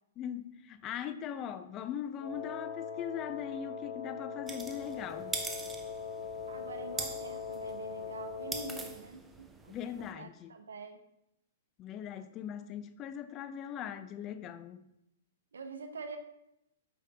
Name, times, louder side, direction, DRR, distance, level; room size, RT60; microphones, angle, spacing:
voice 1, 0.2-5.4 9.7-10.5 11.8-14.9, left 9 dB, 30° left, 0.5 m, -40 dB
Wind instrument woodwind instrument, 2.2-9.0, left 6 dB, 60° left, 1.9 m, -41 dB
sound 1, 4.5-10.1, right 3 dB, 10° right, 0.6 m, -43 dB
voice 2, 6.5-11.0 15.5-16.2, right 4 dB, 85° right, 0.9 m, -45 dB
7.6 x 5.4 x 3.5 m
hypercardioid pair, 125°, 0 cm